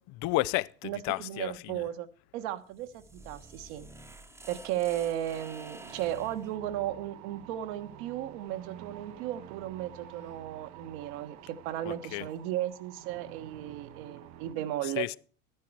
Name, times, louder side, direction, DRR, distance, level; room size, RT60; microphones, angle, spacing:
voice 1, 0.2-1.8 11.8-12.3 14.8-15.2, left 20 dB, 50° left, 0.5 m, -32 dB
voice 2, 0.8-2.1 2.3-3.9 4.5-15.1, right 12 dB, 60° right, 1.4 m, -35 dB
sound 1, 2.6-6.5, right 2 dB, 5° right, 1.0 m, -49 dB
sound 2, 5.8-14.6, right 12 dB, 45° right, 0.8 m, -49 dB
12.5 x 9.5 x 4.8 m
hypercardioid pair, 95°, 38 cm